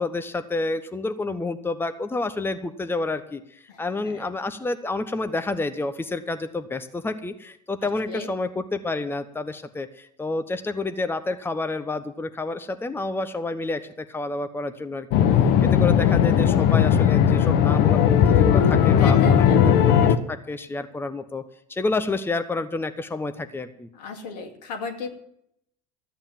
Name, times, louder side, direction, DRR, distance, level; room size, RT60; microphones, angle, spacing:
voice 1, 0.0-15.2 15.6-19.9 20.3-21.4 21.7-23.9, left 3 dB, 10° left, 10 dB, 1.0 m, -29 dB
voice 2, 3.7-4.3 8.0-8.3 19.0-19.6 23.9-25.1, left 5 dB, 75° left, 4 dB, 2.3 m, -35 dB
sound 1, 15.1-20.2, left 8 dB, 55° left, 1.1 m, -17 dB
13.5 x 8.8 x 7.4 m, 0.73 s
hypercardioid pair, 75°, 21 cm